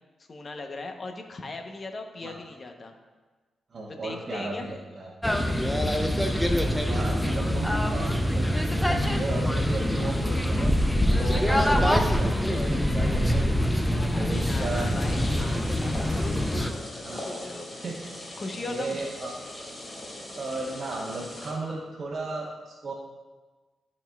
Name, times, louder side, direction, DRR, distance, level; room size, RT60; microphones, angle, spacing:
voice 1, 0.2-2.9 3.9-4.7 14.1-17.7 18.3-19.0, left 3 dB, 45° left, 4 dB, 0.8 m, -39 dB
voice 2, 3.7-5.1 6.8-10.8 11.2-13.5 14.1-15.0 17.0-17.2 17.7-18.0 18.6-19.4 20.3-22.9, right 2 dB, 50° right, -4 dB, 1.0 m, -35 dB
sound 1, 5.2-16.7, equal, 5° left, 0.6 m, -24 dB
sound 2, 14.3-21.5, left 1 dB, 30° left, 1.9 m, -40 dB
11.5 x 4.2 x 2.3 m, 1.3 s
cardioid pair, 65°, 0 cm